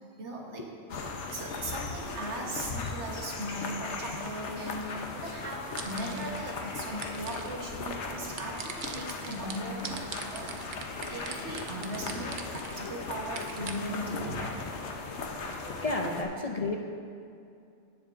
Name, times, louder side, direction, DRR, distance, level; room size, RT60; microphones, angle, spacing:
voice 1, 0.2-0.7 1.3-10.6 11.1-14.9, right 1 dB, 80° right, -1 dB, 1.5 m, -38 dB
sound 1, 0.9-16.2, left 3 dB, 85° left, 1.1 m, -38 dB
sound 2, 5.6-6.4 6.8-7.6 8.4-12.9 13.3-13.9, right 6 dB, 55° right, 0.7 m, -41 dB
voice 2, 15.8-16.8, left 2 dB, 45° left, 2 dB, 0.6 m, -31 dB
17.0 x 7.1 x 2.5 m, 2.5 s
omnidirectional pair, 1.2 m